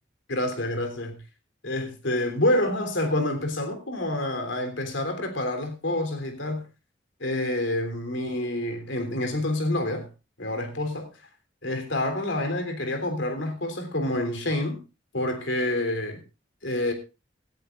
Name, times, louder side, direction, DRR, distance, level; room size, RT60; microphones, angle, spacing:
voice 1, 0.3-1.2 1.6-6.6 7.2-10.1 10.4-11.1 11.6-14.8 15.1-16.2 16.6-16.9, left 1 dB, 75° left, 3.5 m, -27 dB
18.0 x 13.5 x 2.5 m
head